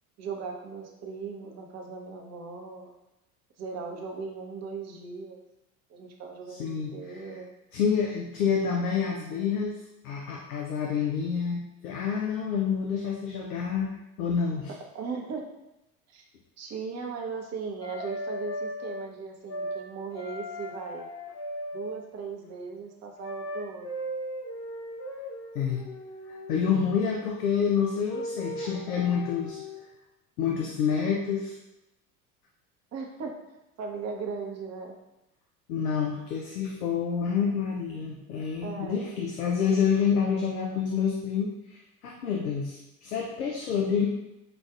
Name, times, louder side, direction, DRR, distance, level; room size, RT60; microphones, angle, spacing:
voice 1, 0.2-2.9 3.6-5.4 5.9-7.5 14.9-15.5 16.1-16.2 16.6-21.1 21.7-23.9 32.9-33.3 33.8-35.0 38.6-39.2, right 5 dB, 35° right, 1 dB, 0.8 m, -38 dB
voice 2, 6.5-7.2 7.7-13.9 14.2-14.7 25.5-25.8 26.5-29.9 30.4-31.6 35.7-44.1, left 6 dB, 80° left, 0 dB, 0.6 m, -28 dB
sound 1, 17.8-19.1 19.5-19.8 20.1-22.0 23.2-26.6 28.1-29.8, equal, 40° left, 1.0 m, -37 dB
5.8 x 2.4 x 2.4 m, 0.93 s
figure-of-eight pair, 65°, 45 cm